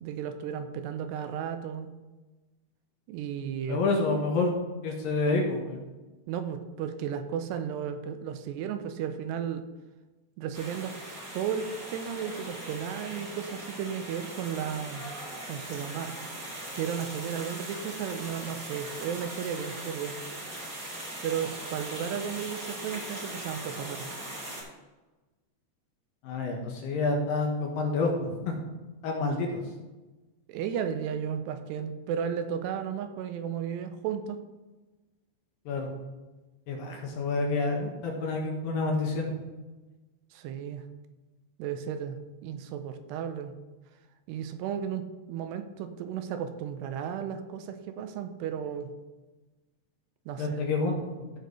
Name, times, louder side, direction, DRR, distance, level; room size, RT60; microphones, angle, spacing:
voice 1, 0.0-1.9 3.1-3.9 6.3-9.6 10.4-11.1 11.3-15.0 15.5-16.1 16.8-20.2 21.2-24.1 30.5-34.4 40.3-40.8 41.6-43.5 44.3-48.9 50.3-50.6, right 8 dB, 85° right, 8 dB, 2.8 m, -34 dB
voice 2, 3.7-4.5 4.8-5.8 26.2-28.6 29.0-29.6 35.7-35.9 36.7-39.3 50.4-51.0, left 3 dB, 70° left, 1 dB, 2.5 m, -28 dB
sound 1, 10.5-24.6, right 1 dB, 20° right, 2.9 m, -40 dB
14.5 x 6.7 x 3.2 m, 1.2 s
omnidirectional pair, 4.9 m